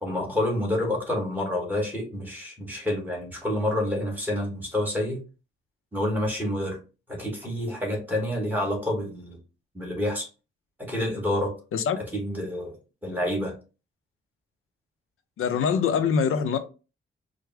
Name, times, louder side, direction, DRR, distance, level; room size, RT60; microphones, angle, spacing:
voice 1, 0.0-5.2 5.9-6.8 7.1-9.4 9.7-10.3 10.8-11.6 12.0-12.8 13.0-13.5, left 1 dB, 10° right, 1.2 m, -28 dB
voice 2, 15.4-16.6, left 6 dB, 80° left, 0.5 m, -23 dB
4.8 x 2.0 x 3.3 m
wide cardioid pair, 155°, 21 cm